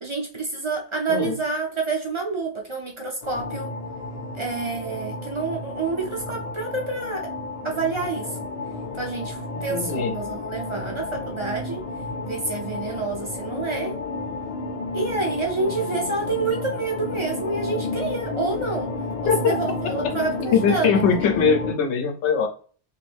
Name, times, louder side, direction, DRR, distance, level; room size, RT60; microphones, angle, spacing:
voice 1, 0.0-3.7 4.3-7.3 7.6-8.3 8.9-11.8 12.2-14.0 14.9-18.9 19.2-20.9, right 4 dB, 40° right, -1 dB, 0.5 m, -28 dB
sound 1, 3.2-21.7, left 3 dB, 40° left, 0.6 m, -31 dB
voice 2, 9.5-10.1 19.3-19.6 20.5-22.5, left 6 dB, 90° left, 3 dB, 0.9 m, -21 dB
2.6 x 2.5 x 3.4 m, 0.41 s
omnidirectional pair, 1.1 m